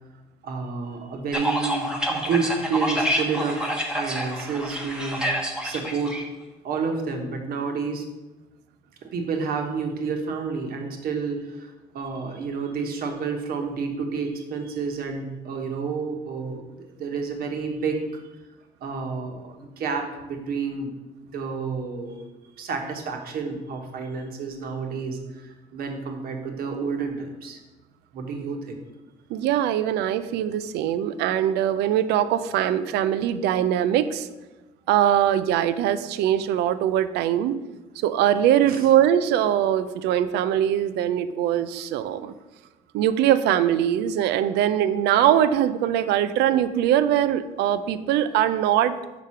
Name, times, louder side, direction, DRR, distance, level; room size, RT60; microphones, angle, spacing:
voice 1, 0.4-3.7 3.9-5.3 5.6-6.2 6.6-8.0 9.0-18.0 18.8-20.9 21.2-22.2 22.6-27.6 28.1-28.8 38.7-38.9, right 5 dB, 65° right, 3 dB, 1.3 m, -30 dB
sound 1, 1.3-6.2, equal, 5° right, 1.1 m, -28 dB
voice 2, 29.3-34.3 34.9-37.6 38.0-42.3 42.9-48.9, right 11 dB, 85° right, 13 dB, 0.4 m, -22 dB
5.2 x 4.9 x 5.6 m, 1.1 s
cardioid pair, 110°, 17 cm